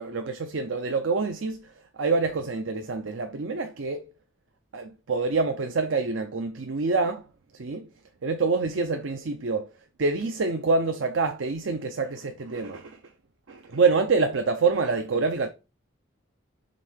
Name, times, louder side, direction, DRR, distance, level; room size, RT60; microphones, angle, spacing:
voice 1, 0.0-4.1 4.7-7.2 7.5-7.9 8.2-9.7 10.0-13.0 13.5-15.5, right 4 dB, 75° right, 0.6 m, -26 dB
5.1 x 3.7 x 5.5 m
head